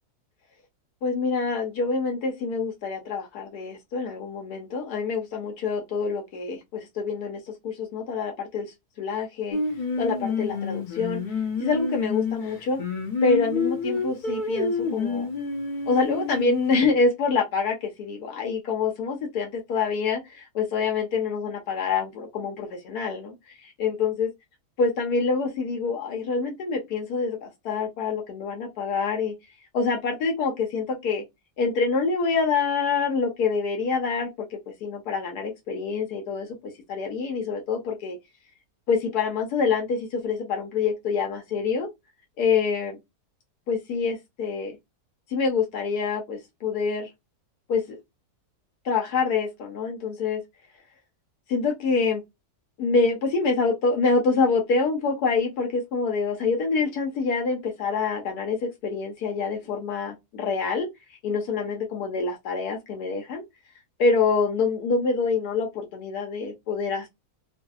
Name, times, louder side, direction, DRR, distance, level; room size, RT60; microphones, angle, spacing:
voice 1, 1.0-8.7 9.0-9.6 10.0-11.2 11.6-12.8 13.2-15.3 15.9-24.3 24.8-29.3 29.7-31.2 31.6-38.2 38.9-41.9 42.4-43.0 43.7-44.8 45.3-47.1 47.7-48.0 48.8-50.4 51.5-52.2 52.8-63.4 64.0-67.1, left 4 dB, 90° left, 1.3 m, -26 dB
Singing, 9.5-16.8, left 4 dB, 70° left, 0.4 m, -28 dB
2.7 x 2.6 x 2.3 m
omnidirectional pair, 1.6 m